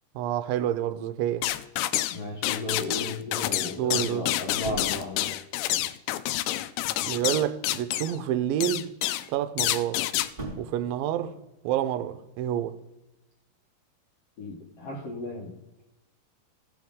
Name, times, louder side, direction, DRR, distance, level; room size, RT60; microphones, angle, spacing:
voice 1, 0.2-1.5 3.7-4.3 7.0-8.9 9.3-10.0 10.6-11.3 11.6-12.8, right 11 dB, 80° right, 2.1 m, -28 dB
sound 1, 1.4-2.2 2.4-8.2 8.6-9.3 9.6-10.3, left 15 dB, 90° left, 2.8 m, -28 dB
voice 2, 2.1-5.4 14.4-15.5, left 2 dB, 75° left, 1.4 m, -35 dB
sound 2, 4.5-5.1 6.8-7.6 10.2-10.9, right 2 dB, 15° right, 2.2 m, -39 dB
17.0 x 7.4 x 3.7 m
omnidirectional pair, 4.9 m